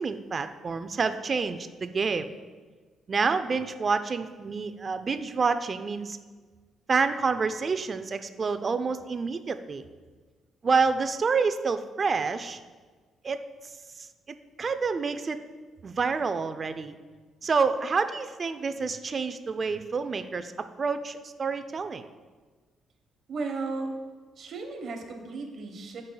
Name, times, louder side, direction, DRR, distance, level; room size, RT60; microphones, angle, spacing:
voice 1, 0.0-2.3 3.1-6.2 6.9-9.8 10.6-12.6 13.2-13.4 14.0-15.4 15.8-16.9 17.4-20.5 20.8-22.0, right 4 dB, 40° right, 10 dB, 0.4 m, -28 dB
voice 2, 23.3-24.0 24.4-26.0, right 3 dB, 60° right, 3 dB, 1.2 m, -35 dB
12.5 x 5.4 x 2.3 m, 1.4 s
cardioid pair, 90°, 0 cm